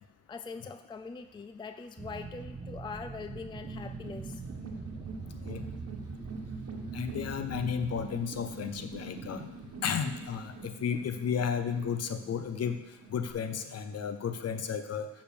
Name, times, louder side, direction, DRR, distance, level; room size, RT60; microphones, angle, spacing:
voice 1, 0.3-4.4, left 4 dB, 15° left, 9 dB, 0.4 m, -42 dB
sound 1, 2.0-8.1, right 4 dB, 25° right, 0.7 m, -42 dB
sound 2, 3.3-13.3, right 3 dB, 50° right, 1.3 m, -45 dB
voice 2, 6.9-9.4 9.8-12.8 13.1-15.1, left 7 dB, 55° left, 9 dB, 0.8 m, -33 dB
7.1 x 5.3 x 6.9 m, 1.0 s
cardioid pair, 90°, 30 cm